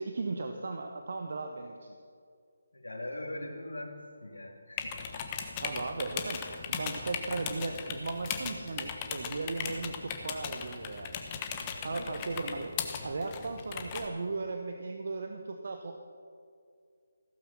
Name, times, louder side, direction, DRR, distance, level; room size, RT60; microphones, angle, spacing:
voice 1, 0.0-2.0 5.6-11.2 11.8-12.7 13.0-16.0, right 3 dB, 50° right, 5 dB, 1.1 m, -36 dB
voice 2, 2.7-5.0 11.9-12.3, left 1 dB, 70° left, 0 dB, 2.4 m, -41 dB
sound 1, 4.8-14.1, left 6 dB, 20° left, 1.2 m, -38 dB
15.5 x 14.5 x 5.8 m, 2.3 s
figure-of-eight pair, 150°, 0 cm